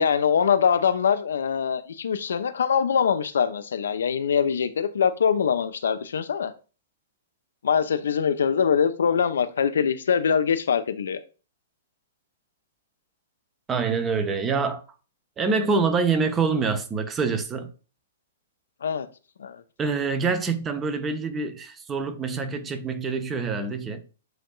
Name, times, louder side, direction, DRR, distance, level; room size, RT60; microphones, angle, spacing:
voice 1, 0.0-6.5 7.6-11.2 18.8-19.1 19.4-19.6, left 7 dB, 65° left, 0.4 m, -23 dB
voice 2, 13.7-14.8 15.4-17.7 19.8-24.0, right 4 dB, 20° right, 0.6 m, -25 dB
7.7 x 2.6 x 2.3 m
figure-of-eight pair, 110°, 0 cm